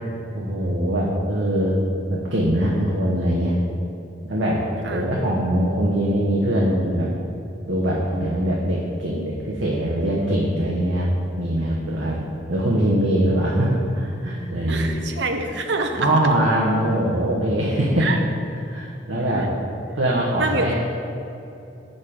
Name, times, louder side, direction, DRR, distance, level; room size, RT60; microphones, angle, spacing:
voice 1, 0.3-1.8 2.1-3.5 4.2-4.6 4.9-7.1 7.7-12.2 12.5-14.9 16.0-18.1 18.7-19.5 20.0-20.7, right 1 dB, 85° right, -4 dB, 1.1 m, -22 dB
voice 2, 14.7-16.1 18.0-18.2 20.4-20.7, right 3 dB, 65° right, 5 dB, 0.8 m, -26 dB
7.4 x 6.6 x 5.0 m, 2.8 s
head